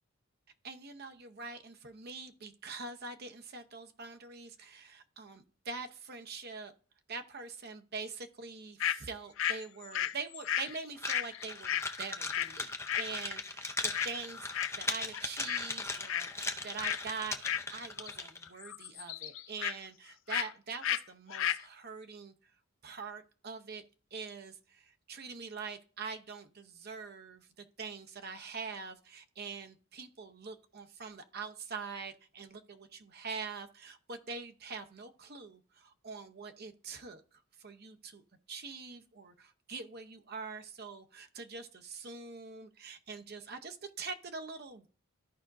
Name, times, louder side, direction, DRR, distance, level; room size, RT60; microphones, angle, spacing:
voice 1, 0.6-6.7 7.1-14.5 14.8-22.5 22.8-23.8 24.1-37.2 37.6-38.2 38.5-44.9, right 4 dB, 45° right, 7 dB, 0.8 m, -44 dB
sound 1, 8.8-9.0 9.4-12.6 12.9-13.1 13.9-14.2 14.5-14.9 15.1-15.7 15.9-16.3 16.8-17.0 17.4-18.2 18.5-19.8 20.3-20.5 20.8-21.0 21.3-21.6, left 10 dB, 60° left, 0.4 m, -34 dB
sound 2, 11.0-18.5, left 3 dB, 10° left, 0.6 m, -38 dB
14.0 x 5.0 x 2.6 m, 0.39 s
head